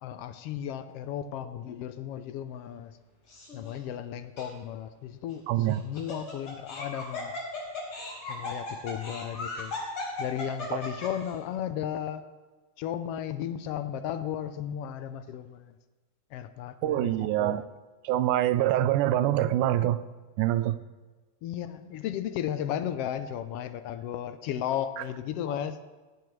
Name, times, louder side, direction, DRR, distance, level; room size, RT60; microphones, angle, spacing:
voice 1, 0.0-2.9 3.5-7.3 8.3-9.7 10.2-12.2 12.8-15.7 16.3-17.6 21.4-25.8, left 10 dB, 80° left, 10 dB, 1.3 m, -35 dB
Laughter, 3.3-3.7 4.4-4.5 5.7-11.3, left 2 dB, 55° left, 5.7 m, -37 dB
voice 2, 5.5-5.8 10.7-10.8 16.8-17.6 18.0-20.0 20.4-20.8, right 13 dB, 90° right, 13 dB, 2.1 m, -25 dB
17.5 x 17.0 x 3.2 m, 1.3 s
omnidirectional pair, 3.5 m